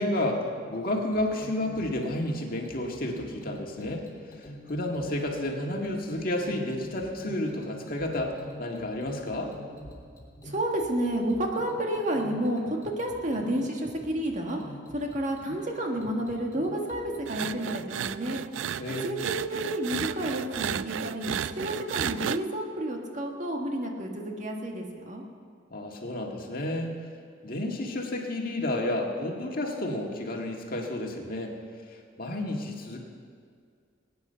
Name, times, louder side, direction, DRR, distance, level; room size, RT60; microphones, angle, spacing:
voice 1, 0.0-9.5 18.8-19.3 25.7-26.9 27.4-31.5 31.9-33.0, left 1 dB, 50° left, 1 dB, 1.8 m, -31 dB
sound 1, 1.1-17.9, equal, 15° left, 3.2 m, -47 dB
voice 2, 10.4-14.6 14.9-18.4 19.0-25.2, right 1 dB, 40° right, 1 dB, 1.7 m, -30 dB
sound 2, 17.3-22.4, right 8 dB, 85° right, 0.4 m, -33 dB
22.0 x 9.5 x 5.7 m, 2.2 s
head